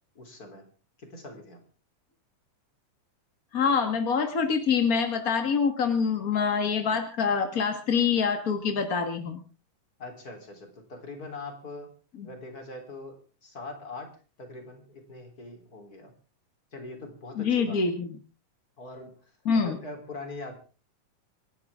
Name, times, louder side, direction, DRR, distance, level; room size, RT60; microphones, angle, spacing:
voice 1, 0.2-0.7 1.0-1.6 10.0-11.9 12.2-14.1 14.4-16.1 16.7-17.9 18.8-19.1 19.5-20.6, left 2 dB, 25° left, 4 dB, 3.8 m, -42 dB
voice 2, 3.5-9.4 12.2-12.3 17.3-18.2 19.4-19.8, left 6 dB, 45° left, 6 dB, 1.2 m, -25 dB
27.0 x 11.5 x 3.6 m, 0.36 s
omnidirectional pair, 3.7 m